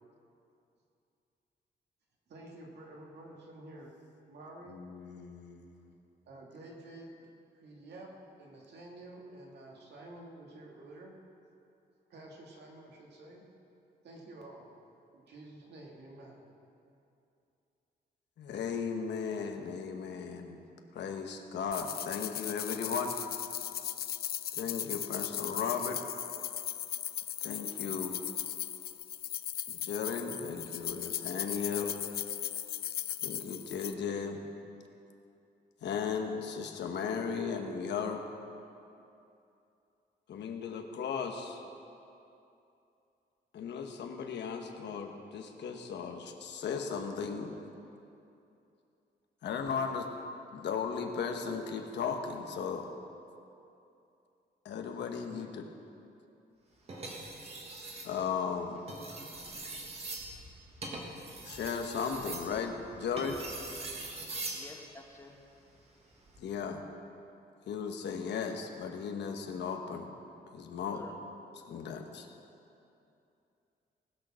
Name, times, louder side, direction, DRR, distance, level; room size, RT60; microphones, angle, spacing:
voice 1, 2.3-3.9 4.3-4.9 6.3-7.3 7.5-8.1 8.4-11.1 12.1-13.4 14.0-14.7 15.1-16.5, right 2 dB, 70° right, -2 dB, 2.3 m, -50 dB
voice 2, 4.7-5.7 18.4-20.6 20.9-23.1 24.5-26.0 27.4-28.2 29.7-31.9 33.2-34.4 35.8-38.2 40.3-41.6 43.5-47.5 49.4-50.1 50.5-52.9 54.6-55.7 58.0-58.8 61.4-63.4 66.4-66.8 67.7-70.1 70.5-71.0 71.7-72.3, left 6 dB, 75° left, 4 dB, 1.1 m, -36 dB
sound 1, 21.7-33.9, left 11 dB, 60° left, 0.4 m, -38 dB
sound 2, 56.9-58.1 58.8-64.7 66.1-66.4, right 2 dB, 35° right, 1.6 m, -42 dB
voice 3, 64.5-65.4 70.9-71.2, left 2 dB, 15° left, 1 dB, 1.1 m, -51 dB
19.0 x 6.5 x 6.3 m, 2.7 s
wide cardioid pair, 180°, 18 cm